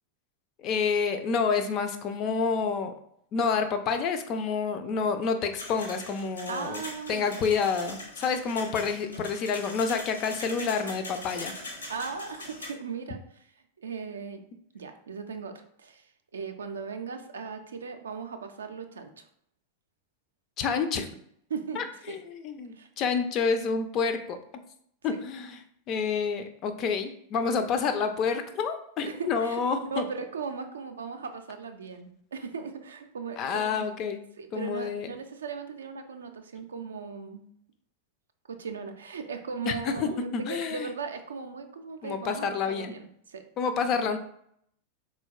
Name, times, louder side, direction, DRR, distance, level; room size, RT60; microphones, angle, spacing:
voice 1, 0.6-2.9 3.3-6.8 7.1-11.5 20.6-21.2 21.8-24.4 25.0-25.6 25.9-30.0 33.4-34.2 34.5-35.1 39.7-40.9 42.0-42.9 43.6-44.2, left 5 dB, 35° left, 8 dB, 0.3 m, -28 dB
sound 1, 5.6-12.7, left 1 dB, 75° left, 0.7 m, -42 dB
voice 2, 6.5-7.4 11.9-13.5 13.8-14.4 14.7-16.1 16.3-19.2 21.5-21.8 22.1-22.2 22.8-22.9 29.1-33.9 34.4-37.4 38.5-43.4, right 5 dB, 70° right, 6 dB, 0.3 m, -38 dB
3.9 x 2.1 x 2.3 m, 0.69 s
figure-of-eight pair, 90°, 0 cm